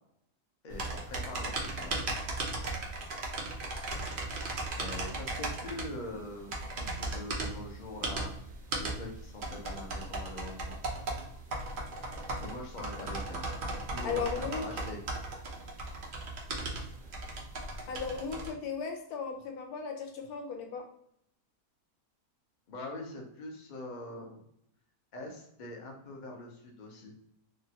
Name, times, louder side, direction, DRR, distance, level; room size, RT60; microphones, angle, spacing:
voice 1, 0.6-2.2 4.7-8.3 8.8-10.8 12.4-13.5 13.7-14.3 14.6-15.0 22.7-24.4 25.1-27.1, left 2 dB, 45° left, 0 dB, 0.6 m, -43 dB
sound 1, 0.7-18.5, right 2 dB, 60° right, 0.5 m, -37 dB
voice 2, 14.0-14.6 17.8-20.8, left 6 dB, 80° left, 4 dB, 1.1 m, -36 dB
2.9 x 2.4 x 2.8 m, 0.75 s
omnidirectional pair, 1.6 m